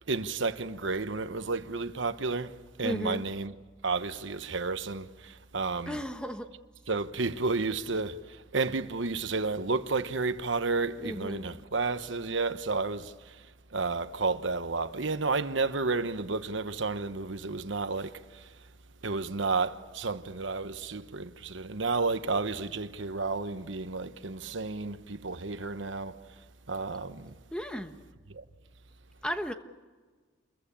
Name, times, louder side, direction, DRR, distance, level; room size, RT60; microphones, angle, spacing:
voice 1, 0.1-2.5 2.8-3.5 3.8-6.0 6.9-13.4 13.7-18.5 19.0-26.2 26.7-27.3 28.3-28.4, right 3 dB, 75° right, 1.1 m, -31 dB
voice 2, 2.8-3.2 5.9-6.5 11.0-11.5 27.5-28.0 29.2-29.5, equal, 5° left, 1.2 m, -34 dB
28.0 x 22.0 x 8.7 m
head